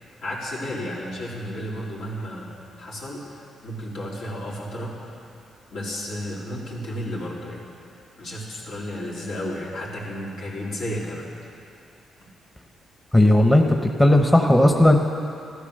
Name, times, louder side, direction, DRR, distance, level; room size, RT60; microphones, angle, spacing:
voice 1, 0.2-2.5 2.8-5.2 5.7-7.6 8.2-11.3, equal, 80° left, -6 dB, 3.8 m, -32 dB
voice 2, 13.1-13.6 14.0-15.0, left 1 dB, 10° left, 3 dB, 1.0 m, -15 dB
14.5 x 13.0 x 6.6 m, 2.6 s
cardioid pair, 105°, 0 cm